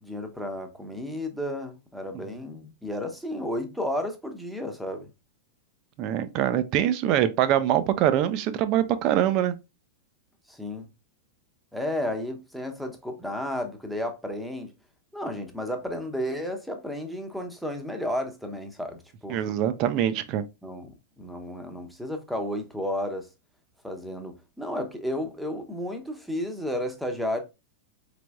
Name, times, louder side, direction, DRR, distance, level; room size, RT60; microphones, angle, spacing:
voice 1, 0.0-5.1 10.5-10.9 11.7-14.7 15.1-19.5 20.6-23.3 23.8-27.4, left 1 dB, ahead, 0.9 m, -32 dB
voice 2, 6.0-9.6 19.3-20.4, right 11 dB, 40° right, 0.5 m, -24 dB
4.9 x 3.3 x 2.3 m
figure-of-eight pair, 95°, 0 cm